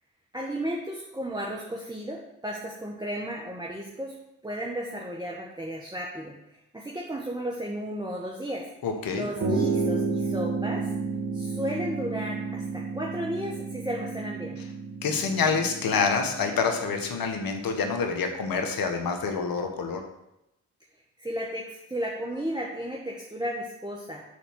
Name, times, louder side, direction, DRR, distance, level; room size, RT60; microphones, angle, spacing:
voice 1, 0.3-4.2 4.4-8.7 9.1-10.9 11.3-14.6 21.2-24.2, equal, 10° right, -2 dB, 1.2 m, -34 dB
voice 2, 8.8-9.3 15.0-20.0, left 5 dB, 60° left, 4 dB, 1.4 m, -27 dB
sound 1, 9.4-17.1, right 4 dB, 55° right, 1.5 m, -31 dB
6.6 x 4.2 x 6.1 m, 0.86 s
hypercardioid pair, 45°, 39 cm